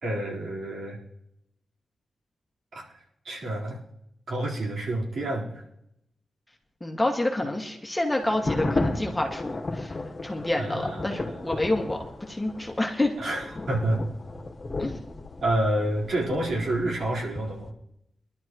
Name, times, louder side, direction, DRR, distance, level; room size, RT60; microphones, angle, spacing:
voice 1, 0.0-1.0 2.7-3.8 4.3-5.6 7.4-7.5 10.6-11.4 13.2-14.0 15.4-17.7, right 1 dB, 65° right, -4 dB, 4.2 m, -29 dB
voice 2, 6.8-9.9 10.2-13.1 14.8-15.0, left 1 dB, 15° left, 1 dB, 2.0 m, -28 dB
sound 1, 8.2-17.7, left 2 dB, 35° left, 1.7 m, -34 dB
23.5 x 11.5 x 3.1 m, 0.81 s
cardioid pair, 90°, 0 cm